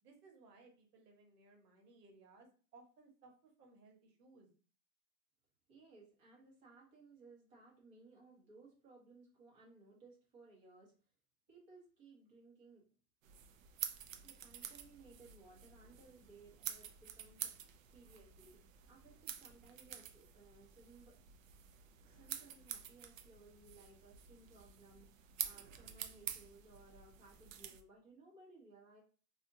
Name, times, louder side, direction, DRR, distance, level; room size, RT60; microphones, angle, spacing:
voice 1, 0.0-4.5, right 3 dB, 85° right, 2 dB, 1.2 m, -63 dB
voice 2, 5.7-10.9 11.5-12.9 13.5-13.7 14.2-21.2 22.0-29.0, right 3 dB, 25° right, -4 dB, 1.2 m, -61 dB
sound 1, 13.2-27.8, right 9 dB, 60° right, 0.5 m, -49 dB
2.6 x 2.5 x 2.6 m, 0.39 s
hypercardioid pair, 170°, 46 cm